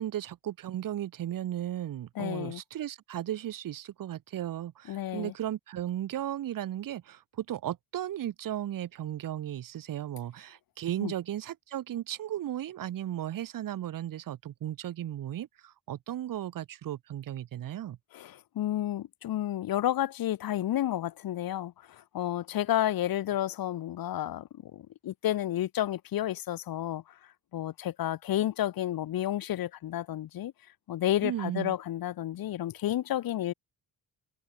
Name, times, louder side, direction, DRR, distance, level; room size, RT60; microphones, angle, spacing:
voice 1, 0.0-18.0 31.2-31.8, right 12 dB, 60° right, 0.9 m, -35 dB
voice 2, 2.2-2.6 4.9-5.3 11.0-11.1 18.1-27.2 27.5-30.5 30.9-33.5, left 12 dB, 65° left, 0.9 m, -31 dB
cardioid pair, 125°, 38 cm